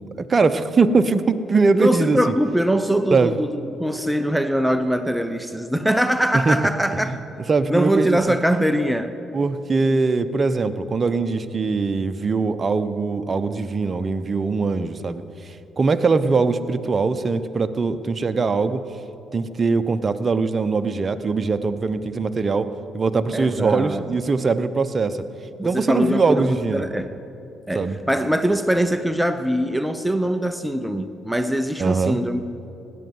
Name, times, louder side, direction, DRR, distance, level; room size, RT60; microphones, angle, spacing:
voice 1, 0.0-2.3 3.1-3.3 6.5-6.6 7.5-8.2 9.3-18.8 19.3-22.7 22.9-25.2 25.6-26.9 27.7-28.0 31.8-32.2, right 4 dB, 40° right, 10 dB, 0.9 m, -21 dB
voice 2, 1.7-7.2 7.7-9.2 23.3-24.0 25.6-27.1 27.7-32.4, equal, 5° right, 9 dB, 0.8 m, -22 dB
17.0 x 10.5 x 7.9 m, 2.8 s
hypercardioid pair, 50°, 0 cm